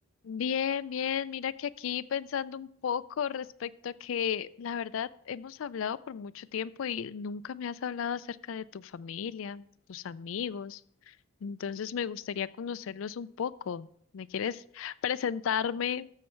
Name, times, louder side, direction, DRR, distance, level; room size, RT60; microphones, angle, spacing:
voice 1, 0.2-10.8 11.1-11.2 11.4-13.9 14.1-16.1, left 7 dB, 70° left, 16 dB, 0.4 m, -34 dB
13.0 x 6.6 x 4.4 m, 0.64 s
head